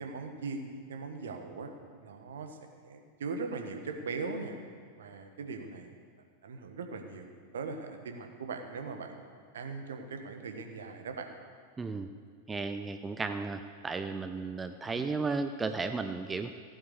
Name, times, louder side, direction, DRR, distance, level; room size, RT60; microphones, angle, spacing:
voice 1, 0.0-1.7 2.0-4.6 4.9-6.0 6.4-11.3 14.8-15.2, right 4 dB, 65° right, 5 dB, 1.4 m, -40 dB
voice 2, 11.8-12.1 12.5-16.5, right 4 dB, 15° right, 8 dB, 0.6 m, -34 dB
15.5 x 8.9 x 6.6 m, 2.1 s
figure-of-eight pair, 90°, 0 cm